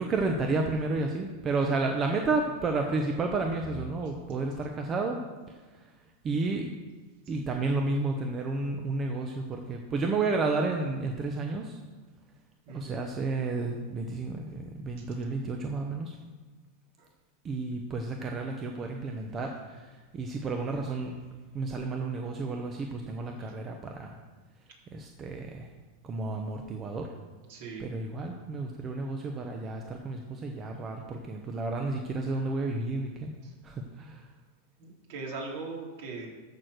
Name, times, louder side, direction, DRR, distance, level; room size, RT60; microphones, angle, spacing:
voice 1, 0.0-5.2 6.2-6.7 7.3-11.8 12.7-16.1 17.4-21.1 21.5-24.2 24.9-25.7 26.0-27.1 27.8-33.3 33.6-34.2, right 3 dB, 25° right, 2 dB, 1.0 m, -31 dB
voice 2, 12.6-13.0 15.0-15.1 17.0-17.1 23.4-23.5 27.5-27.9 33.4-33.5 34.8-36.3, right 3 dB, 65° right, -2 dB, 3.3 m, -40 dB
13.0 x 4.5 x 6.5 m, 1.3 s
supercardioid pair, 125°, 0 cm